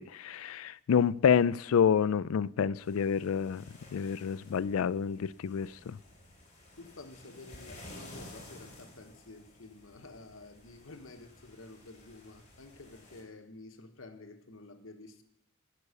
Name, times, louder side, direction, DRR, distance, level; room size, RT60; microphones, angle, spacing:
voice 1, 0.0-3.6 3.9-5.9, left 7 dB, 90° left, 0.4 m, -28 dB
sound 1, 2.8-13.2, left 1 dB, 35° left, 3.3 m, -53 dB
voice 2, 6.8-15.2, left 2 dB, 70° left, 1.1 m, -50 dB
12.0 x 6.8 x 8.2 m
head